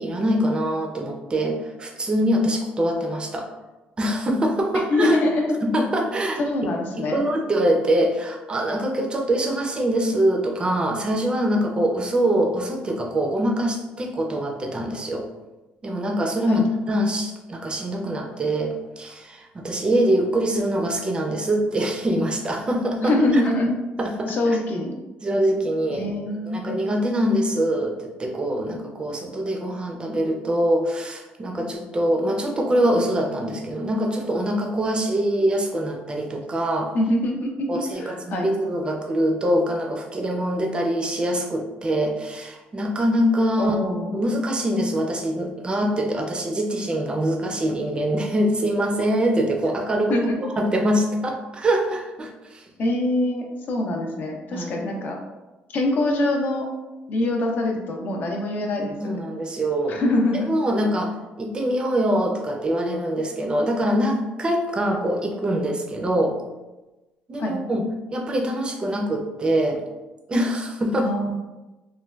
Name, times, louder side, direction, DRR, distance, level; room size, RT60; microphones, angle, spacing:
voice 1, 0.0-3.5 4.0-5.2 5.6-15.3 15.8-23.4 24.0-24.6 25.2-26.0 26.5-36.9 37.7-43.8 44.0-50.1 50.6-52.6 54.5-54.8 59.0-60.0 60.5-66.4 67.3-67.8 68.1-69.8 70.3-71.1, right 1 dB, 25° right, 3 dB, 0.4 m, -24 dB
voice 2, 4.7-5.6 6.4-7.2 16.5-16.6 23.0-23.7 24.3-25.0 25.9-26.8 36.9-38.5 43.6-44.3 50.1-50.4 52.8-55.2 55.7-56.7 57.1-59.2 59.9-60.5 67.4-67.5 71.0-71.4, left 1 dB, 55° left, 1 dB, 0.5 m, -24 dB
3.2 x 2.2 x 2.2 m, 1.1 s
cardioid pair, 100°, 4 cm